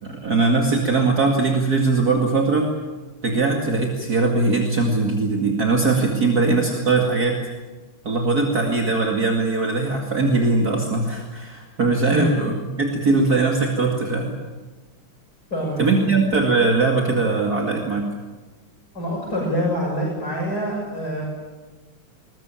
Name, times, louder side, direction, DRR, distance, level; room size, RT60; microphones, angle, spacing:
voice 1, 0.0-2.7 3.2-7.4 8.0-14.4 15.8-18.1, right 3 dB, 45° right, 1 dB, 2.7 m, -20 dB
voice 2, 15.5-16.1 18.9-21.2, equal, 45° left, -4 dB, 7.6 m, -25 dB
21.5 x 21.5 x 9.1 m, 1.3 s
omnidirectional pair, 2.3 m